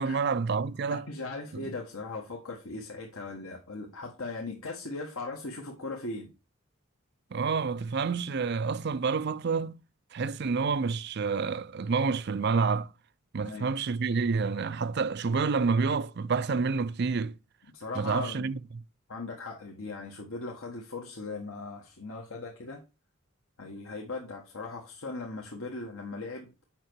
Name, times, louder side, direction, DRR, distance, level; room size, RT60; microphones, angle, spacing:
voice 1, 0.0-1.1 1.5-1.7 7.3-9.7 10.1-12.9 13.3-17.3 18.0-18.8, right 5 dB, 50° right, 0.5 m, -28 dB
voice 2, 0.9-6.3 13.4-13.7 17.7-18.5 19.1-22.8 23.6-26.5, left 3 dB, 80° left, 1.4 m, -39 dB
7.3 x 5.8 x 4.5 m
head